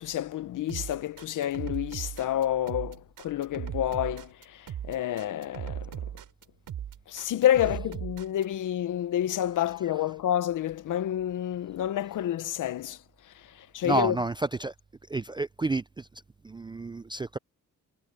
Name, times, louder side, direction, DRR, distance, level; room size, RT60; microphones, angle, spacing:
voice 1, 0.0-6.1 7.1-13.0 13.6-14.2, left 11 dB, 60° left, 0.7 m, -29 dB
sound 1, 0.7-8.4, right 10 dB, 70° right, 7.5 m, -37 dB
voice 2, 13.8-14.7 15.1-16.1 16.4-17.4, right 2 dB, 15° right, 0.3 m, -30 dB
wide cardioid pair, 155°, 35 cm